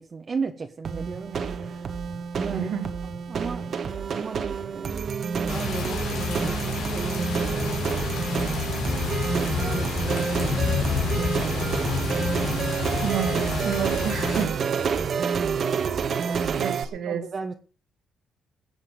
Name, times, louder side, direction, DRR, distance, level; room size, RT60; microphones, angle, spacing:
voice 1, 0.0-2.0 2.4-2.7 3.0-3.8 4.0-5.2 5.5-8.1 8.6-9.0 9.3-13.0 15.0-15.3 16.2-16.8 17.0-17.5, right 5 dB, 40° right, 1.4 m, -36 dB
sound 1, 0.8-16.8, right 6 dB, 55° right, 1.5 m, -28 dB
voice 2, 2.5-2.9 13.0-14.6 16.6-17.2, right 9 dB, 75° right, 2.0 m, -30 dB
sound 2, 5.5-14.5, left 5 dB, 80° left, 3.7 m, -29 dB
21.0 x 7.4 x 5.3 m
cardioid pair, 90°, 0 cm